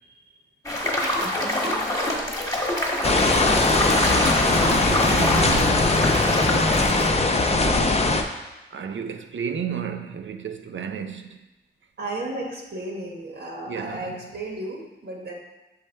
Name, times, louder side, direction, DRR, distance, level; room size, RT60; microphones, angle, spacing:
sound 1, 0.7-7.1, left 1 dB, 15° left, 1.2 m, -26 dB
sound 2, 3.0-8.2, left 2 dB, 35° left, 0.5 m, -20 dB
voice 1, 3.8-6.0 7.3-8.2 8.7-11.5 13.7-14.3, right 7 dB, 80° right, 0.5 m, -33 dB
voice 2, 12.0-15.3, right 2 dB, 65° right, 1.2 m, -33 dB
6.8 x 3.3 x 4.4 m
wide cardioid pair, 95°, 19 cm